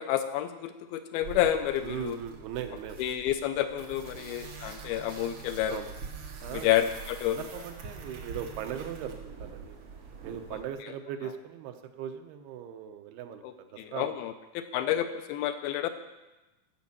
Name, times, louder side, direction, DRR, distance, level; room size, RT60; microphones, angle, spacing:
voice 1, 0.0-2.2 3.0-5.8 6.5-7.4 13.8-15.9, left 11 dB, 80° left, 8 dB, 2.4 m, -29 dB
sound 1, 1.2-10.6, right 5 dB, 60° right, 1.5 m, -44 dB
voice 2, 1.8-3.1 4.1-4.4 5.7-5.9 6.4-6.7 7.3-9.8 10.2-14.1, right 9 dB, 85° right, 6 dB, 2.7 m, -39 dB
15.0 x 5.3 x 7.2 m, 1.1 s
omnidirectional pair, 4.5 m